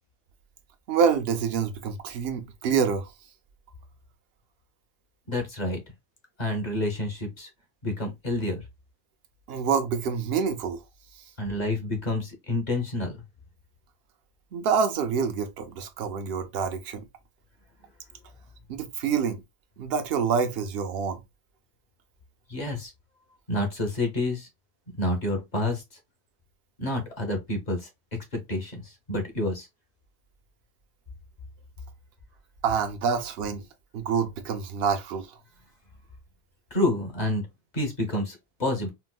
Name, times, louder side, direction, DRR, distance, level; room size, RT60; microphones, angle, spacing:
voice 1, 0.9-3.1 9.5-10.8 14.5-17.0 18.7-19.4 19.8-21.2 32.6-33.6 33.9-35.4, right 6 dB, 70° right, 0.8 m, -27 dB
voice 2, 5.3-5.8 6.4-7.5 7.8-8.6 11.4-13.2 22.5-22.9 23.5-24.5 25.0-25.8 26.8-27.9 28.3-29.7 36.7-37.5 37.7-38.9, left 1 dB, 45° left, 0.9 m, -28 dB
4.2 x 2.0 x 2.2 m
omnidirectional pair, 1.1 m